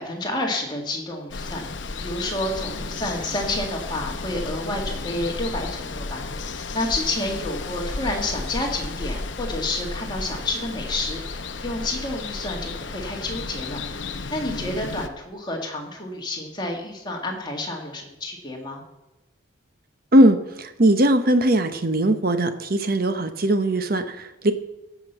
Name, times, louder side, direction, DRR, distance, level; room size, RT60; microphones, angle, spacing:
voice 1, 0.0-1.6 2.0-13.8 14.3-18.8, left 1 dB, 20° left, 0 dB, 2.0 m, -29 dB
Water, 1.3-15.1, left 3 dB, 65° left, 0.8 m, -33 dB
voice 2, 20.1-24.5, right 1 dB, 50° right, 9 dB, 0.9 m, -19 dB
15.0 x 6.1 x 5.6 m, 1.0 s
head